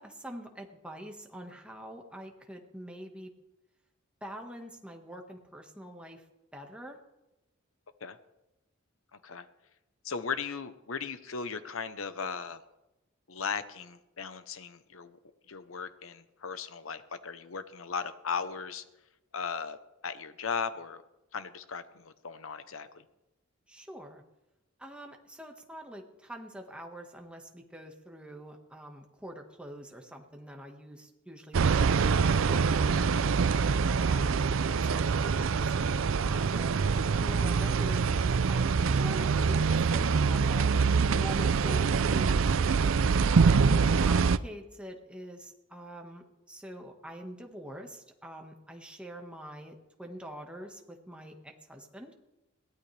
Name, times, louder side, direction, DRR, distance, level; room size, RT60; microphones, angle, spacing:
voice 1, 0.0-3.3 4.2-6.2 6.5-7.0 23.7-24.2 24.8-33.3 33.9-36.7 37.2-40.7 41.1-42.5 43.3-52.1, equal, 5° right, 2 dB, 1.6 m, -45 dB
voice 2, 10.0-12.6 13.3-15.2 15.5-18.8 19.3-19.8 20.0-21.0 21.3-23.0 43.6-43.7, left 5 dB, 75° left, 12 dB, 0.9 m, -37 dB
sound 1, 31.5-44.4, right 5 dB, 70° right, 0.5 m, -25 dB
21.5 x 16.5 x 3.4 m, 0.98 s
head